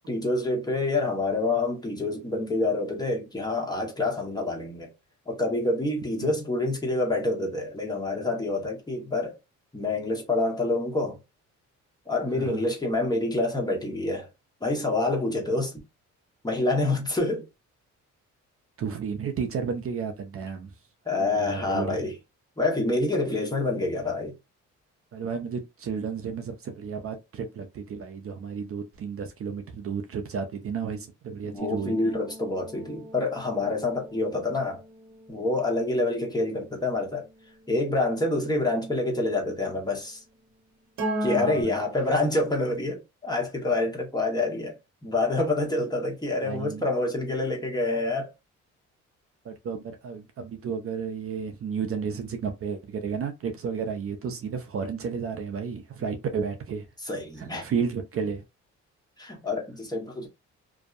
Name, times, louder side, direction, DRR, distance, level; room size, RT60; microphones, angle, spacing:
voice 1, 0.1-4.9 5.3-9.4 9.7-11.2 12.1-14.3 14.6-15.7 16.4-17.5 21.1-22.2 22.6-24.3 31.4-34.8 35.3-37.3 37.7-40.2 41.2-44.8 45.0-48.3 57.0-57.6 59.2-60.3, left 2 dB, 15° left, 1.0 m, -27 dB
voice 2, 18.8-20.7 21.2-22.1 25.1-32.0 41.3-41.7 46.4-46.8 49.4-56.8 57.4-58.4, right 6 dB, 50° right, 0.6 m, -32 dB
sound 1, 31.6-37.8 41.0-41.6, right 1 dB, 80° right, 1.0 m, -37 dB
2.6 x 2.1 x 2.4 m
cardioid pair, 90°, 30 cm